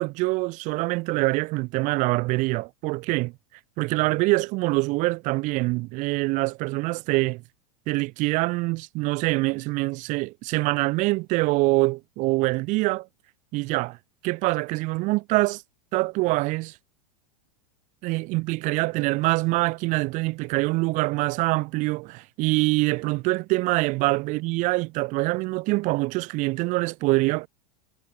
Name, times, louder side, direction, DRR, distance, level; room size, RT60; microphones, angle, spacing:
voice 1, 0.0-3.3 3.8-7.4 7.9-13.1 13.5-14.0 14.2-15.6 15.9-16.7 18.0-27.5, right 23 dB, 40° right, 0.6 m, -24 dB
supercardioid pair, 130°, 20 cm